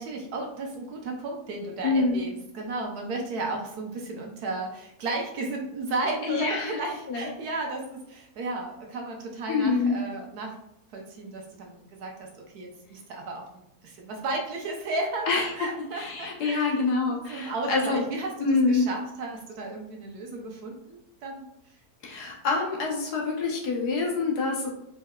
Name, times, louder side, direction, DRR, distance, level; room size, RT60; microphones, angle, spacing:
voice 1, 0.0-10.6 10.9-13.4 13.8-21.5, right 2 dB, 70° right, 1 dB, 1.2 m, -34 dB
voice 2, 1.8-2.2 6.2-6.7 7.1-7.3 9.5-10.0 15.3-15.7 15.9-18.0 18.4-18.8 22.0-24.7, left 4 dB, 70° left, -1 dB, 1.4 m, -26 dB
4.6 x 3.2 x 2.2 m, 0.81 s
omnidirectional pair, 1.8 m